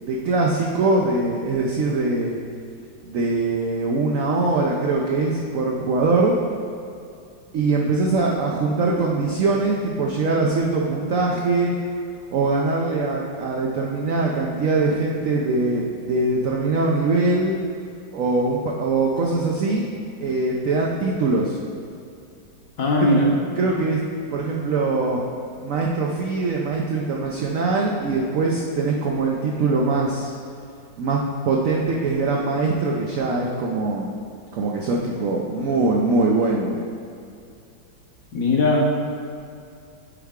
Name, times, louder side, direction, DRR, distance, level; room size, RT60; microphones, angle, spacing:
voice 1, 0.0-2.4 3.0-6.4 7.5-11.7 12.3-17.6 18.1-19.9 20.2-21.6 23.0-23.1 23.6-24.0 24.3-25.2 25.6-30.3 31.0-34.1 34.5-36.8, right 3 dB, 85° right, -1 dB, 0.7 m, -22 dB
voice 2, 22.8-23.4 38.3-39.1, left 1 dB, 55° left, -2 dB, 1.1 m, -19 dB
7.2 x 4.7 x 3.6 m, 2.4 s
omnidirectional pair, 2.0 m